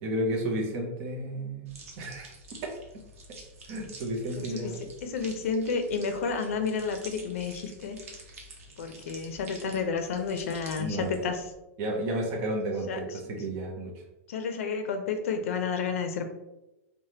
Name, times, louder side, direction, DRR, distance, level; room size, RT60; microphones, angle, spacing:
voice 1, 0.0-2.3 3.7-4.8 10.8-11.2 11.8-13.9, right 1 dB, 30° right, 1 dB, 0.5 m, -32 dB
sound 1, 1.7-11.5, right 2 dB, 90° right, 0.8 m, -48 dB
voice 2, 4.4-4.7 5.0-8.0 8.8-11.5 12.9-13.2 14.3-16.3, left 5 dB, 75° left, 6 dB, 0.5 m, -31 dB
3.2 x 2.1 x 2.7 m, 0.96 s
supercardioid pair, 170°, 7 cm